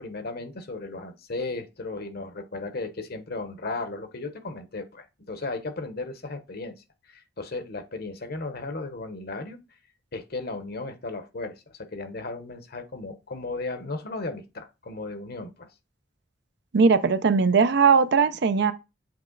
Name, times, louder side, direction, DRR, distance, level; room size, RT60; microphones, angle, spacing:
voice 1, 0.0-6.7 7.1-9.6 10.1-15.7, left 3 dB, 55° left, 1.0 m, -35 dB
voice 2, 16.7-18.7, right 5 dB, 60° right, 0.5 m, -19 dB
7.7 x 3.2 x 3.9 m
head